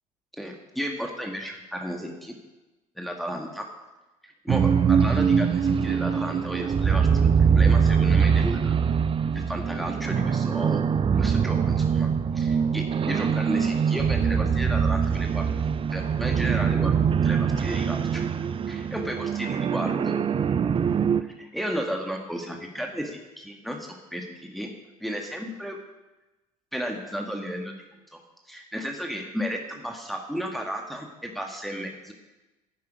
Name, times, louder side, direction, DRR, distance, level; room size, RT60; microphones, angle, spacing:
voice 1, 0.3-2.3 3.0-3.7 4.4-8.7 9.3-10.8 11.1-12.1 12.3-15.5 15.9-18.2 18.7-20.1 21.4-24.7 25.0-25.8 26.7-27.7 28.1-28.2 28.5-32.1, equal, ahead, 2 dB, 1.7 m, -33 dB
sound 1, 4.5-21.2, right 6 dB, 30° right, 0.6 m, -23 dB
11.0 x 10.5 x 5.1 m, 1.1 s
figure-of-eight pair, 60°, 19 cm